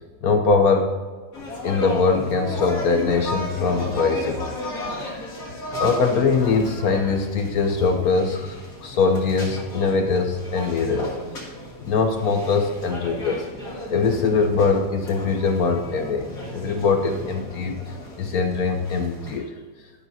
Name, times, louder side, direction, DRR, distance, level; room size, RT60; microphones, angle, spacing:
voice 1, 0.2-0.9 1.6-4.4 5.8-11.1 11.8-13.5 13.9-16.3 16.5-19.5, left 4 dB, 70° left, 5 dB, 0.9 m, -22 dB
sound 1, 1.3-19.4, left 1 dB, 40° left, 3.1 m, -34 dB
12.0 x 11.5 x 2.8 m, 1.4 s
omnidirectional pair, 2.4 m